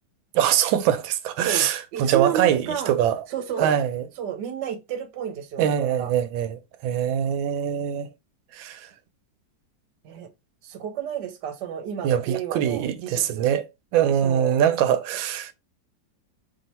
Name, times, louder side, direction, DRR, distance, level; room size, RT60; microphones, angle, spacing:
voice 1, 0.3-3.2 3.6-4.0 5.6-8.1 8.5-8.9 12.0-13.7 13.9-15.5, right 10 dB, 90° right, 1.4 m, -23 dB
voice 2, 1.9-2.9 3.3-3.7 4.2-6.1 10.0-10.3 10.6-13.5 14.2-14.6, right 9 dB, 70° right, 1.3 m, -31 dB
3.3 x 2.8 x 4.1 m
omnidirectional pair, 2.1 m